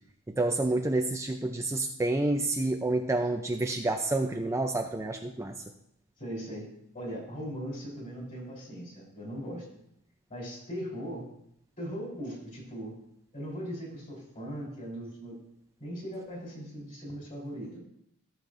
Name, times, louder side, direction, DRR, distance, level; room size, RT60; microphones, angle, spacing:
voice 1, 0.4-5.5, right 2 dB, 15° right, 4 dB, 0.5 m, -29 dB
voice 2, 6.2-9.7 10.3-11.2 11.8-13.0 13.3-15.4 15.8-17.8, equal, 35° left, -2 dB, 3.8 m, -39 dB
14.5 x 7.2 x 2.6 m, 0.75 s
head